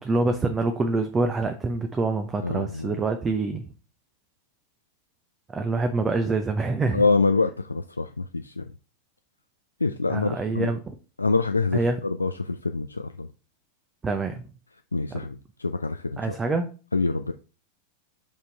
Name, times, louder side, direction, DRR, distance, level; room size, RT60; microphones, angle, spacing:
voice 1, 0.0-3.6 5.5-7.0 10.1-10.9 11.7-12.0 14.0-14.5 16.2-16.7, right 3 dB, 20° right, 0.7 m, -26 dB
voice 2, 2.4-3.0 6.9-8.6 9.8-10.7 11.2-13.3 14.9-16.4 16.9-17.3, left 3 dB, 85° left, 0.3 m, -26 dB
5.3 x 5.3 x 3.3 m
figure-of-eight pair, 90°, 0 cm